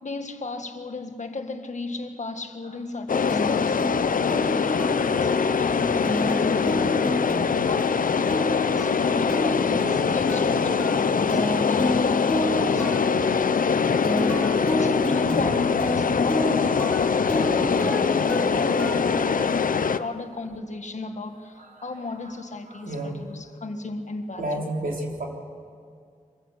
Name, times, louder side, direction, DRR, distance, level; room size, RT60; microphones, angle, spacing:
voice 1, 0.0-3.8 4.3-7.2 7.7-13.6 14.7-18.2 18.5-24.6, left 3 dB, 55° left, 6 dB, 1.7 m, -35 dB
sound 1, 3.1-20.0, left 6 dB, 75° left, 0.7 m, -23 dB
sound 2, 3.3-20.0, left 1 dB, 5° left, 3.1 m, -29 dB
voice 2, 21.6-21.9 22.3-22.4 22.7-23.3 24.4-25.3, right 1 dB, 90° right, 0 dB, 3.6 m, -32 dB
24.5 x 15.5 x 8.2 m, 2.2 s
wide cardioid pair, 100°, 14 cm